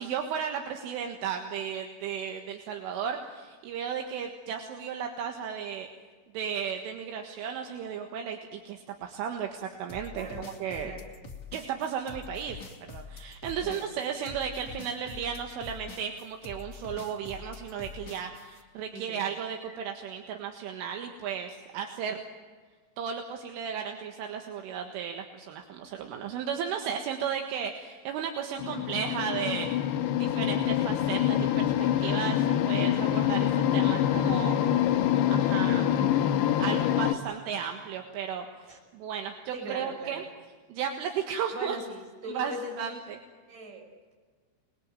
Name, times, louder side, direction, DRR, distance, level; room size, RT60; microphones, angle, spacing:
voice 1, 0.0-5.9 6.3-10.9 11.5-12.6 12.9-22.2 23.0-29.9 30.2-31.7 32.0-34.6 35.3-35.9 36.6-40.2 40.7-41.8 42.3-43.2, right 7 dB, 75° right, 3 dB, 4.0 m, -34 dB
sound 1, 9.9-18.6, left 4 dB, 40° left, 1.5 m, -45 dB
voice 2, 18.9-19.2 19.7-19.8 38.7-38.8 39.5-40.2 41.5-42.9 43.5-43.8, right 1 dB, 40° right, 0 dB, 7.4 m, -40 dB
sound 2, 28.6-37.1, left 11 dB, 75° left, 2.7 m, -25 dB
27.5 x 22.0 x 9.0 m, 1.5 s
omnidirectional pair, 5.9 m